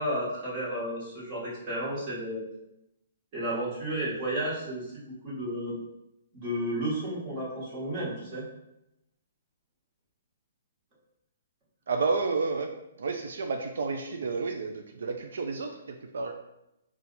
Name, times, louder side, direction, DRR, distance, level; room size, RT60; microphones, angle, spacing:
voice 1, 0.0-2.4 3.3-5.8 6.3-8.4, right 1 dB, 25° right, -7 dB, 1.4 m, -32 dB
voice 2, 11.9-12.7 13.0-16.3, right 4 dB, 70° right, 4 dB, 0.4 m, -31 dB
4.2 x 2.4 x 4.0 m, 0.87 s
hypercardioid pair, 170°, 0 cm